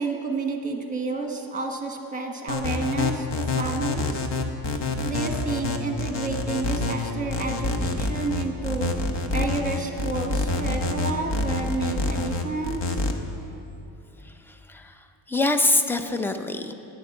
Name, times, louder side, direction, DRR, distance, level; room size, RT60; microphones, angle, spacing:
voice 1, 0.0-4.3 5.0-8.9 9.3-12.9, right 3 dB, 15° right, 2 dB, 1.3 m, -30 dB
sound 1, 2.5-13.1, left 3 dB, 60° left, 1.1 m, -27 dB
voice 2, 14.2-16.7, left 2 dB, 5° left, 8 dB, 0.4 m, -25 dB
11.5 x 10.0 x 8.5 m, 2.8 s
wide cardioid pair, 170°, 47 cm